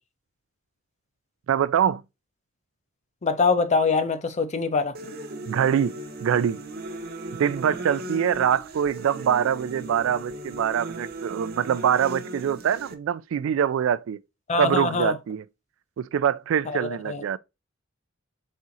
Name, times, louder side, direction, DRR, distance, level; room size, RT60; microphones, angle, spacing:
voice 1, 1.5-2.0 5.5-6.6 7.4-14.2 14.6-15.4 16.0-17.4, right 8 dB, 70° right, 0.3 m, -24 dB
voice 2, 3.2-5.0 14.5-15.2 16.7-17.2, left 4 dB, 35° left, 0.5 m, -24 dB
sound 1, 4.9-12.9, right 1 dB, 50° right, 0.8 m, -37 dB
4.3 x 3.6 x 2.6 m
head